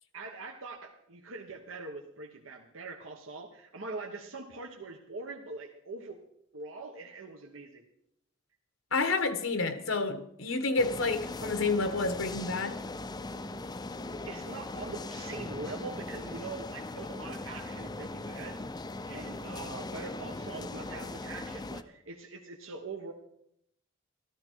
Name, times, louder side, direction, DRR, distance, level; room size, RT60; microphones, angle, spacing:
voice 1, 0.1-6.2 6.5-7.8 14.3-23.1, right 3 dB, 75° right, 1.3 m, -43 dB
voice 2, 8.9-12.8, left 3 dB, 75° left, 1.2 m, -29 dB
sound 1, 10.8-21.8, left 2 dB, 20° left, 0.5 m, -39 dB
13.5 x 13.5 x 4.6 m
head